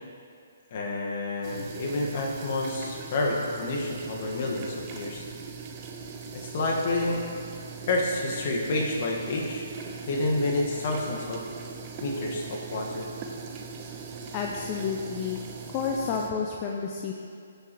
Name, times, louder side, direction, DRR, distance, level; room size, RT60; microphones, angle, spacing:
voice 1, 0.7-5.2 6.3-7.2 7.9-9.7 10.1-11.4 12.0-13.0, left 2 dB, 50° left, -2 dB, 1.7 m, -29 dB
sound 1, 1.4-16.3, right 5 dB, 35° right, 1.0 m, -40 dB
voice 2, 14.3-15.4 15.7-17.1, left 6 dB, 30° left, 0 dB, 0.7 m, -30 dB
16.0 x 7.0 x 3.2 m, 2.3 s
figure-of-eight pair, 135°, 0 cm